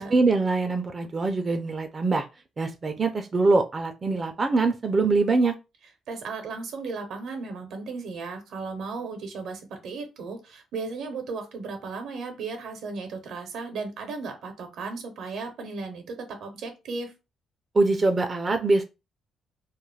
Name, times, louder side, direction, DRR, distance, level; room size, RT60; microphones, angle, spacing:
voice 1, 0.0-2.2 2.6-5.5 17.7-18.8, right 3 dB, 35° right, 5 dB, 0.4 m, -23 dB
voice 2, 6.1-17.1, right 4 dB, 75° right, 5 dB, 0.6 m, -35 dB
2.3 x 2.1 x 3.2 m, 0.27 s
cardioid pair, 90°, 0 cm